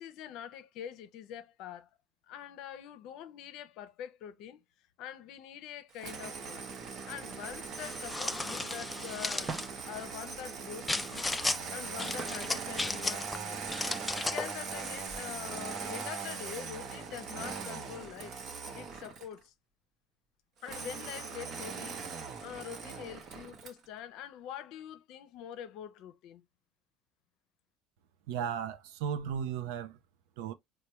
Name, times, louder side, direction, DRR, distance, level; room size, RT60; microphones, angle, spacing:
voice 1, 0.0-1.9 2.3-4.6 5.0-6.7 7.0-9.5 9.8-11.3 11.7-13.7 14.1-18.3 18.7-19.5 20.6-22.0 22.4-26.4, left 9 dB, 70° left, 0.6 m, -44 dB
Engine starting, 6.0-19.4 20.6-23.8, right 5 dB, 50° right, 0.9 m, -41 dB
sound 1, 7.8-9.7 10.9-11.6 12.0-13.4 13.7-14.5, left 2 dB, 15° left, 0.4 m, -35 dB
sound 2, 14.3-18.4, right 4 dB, 25° right, 0.6 m, -51 dB
voice 2, 28.3-30.0 30.4-30.5, right 8 dB, 85° right, 0.5 m, -35 dB
4.4 x 2.2 x 3.0 m
supercardioid pair, 100°, 0 cm